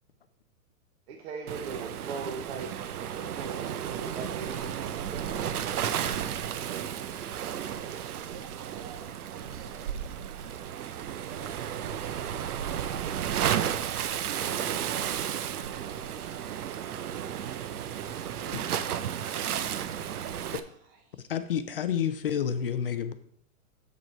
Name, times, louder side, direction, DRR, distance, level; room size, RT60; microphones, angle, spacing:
voice 1, 1.1-5.5, right 5 dB, 45° right, 2 dB, 0.9 m, -40 dB
Waves surf, 1.5-20.6, right 9 dB, 75° right, 0.7 m, -33 dB
voice 2, 7.9-13.8 16.7-17.0 19.9-21.3, right 3 dB, 20° right, 3 dB, 1.1 m, -53 dB
voice 3, 21.3-23.1, left 8 dB, 40° left, 11 dB, 0.4 m, -29 dB
8.0 x 5.1 x 4.3 m, 0.63 s
hypercardioid pair, 160°, 45 cm